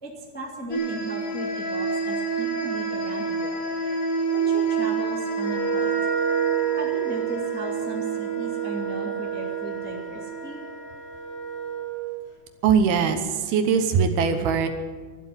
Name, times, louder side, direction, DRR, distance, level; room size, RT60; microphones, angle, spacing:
voice 1, 0.0-3.6 4.3-5.9 6.8-10.6, right 1 dB, 5° left, -1 dB, 0.9 m, -37 dB
sound 1, 0.7-11.2, right 5 dB, 55° left, 3.2 m, -29 dB
Wind instrument woodwind instrument, 5.4-12.0, right 7 dB, 70° left, 5.4 m, -30 dB
voice 2, 12.6-14.7, right 6 dB, 75° right, 7 dB, 2.8 m, -21 dB
12.5 x 12.0 x 9.6 m, 1.5 s
omnidirectional pair, 4.8 m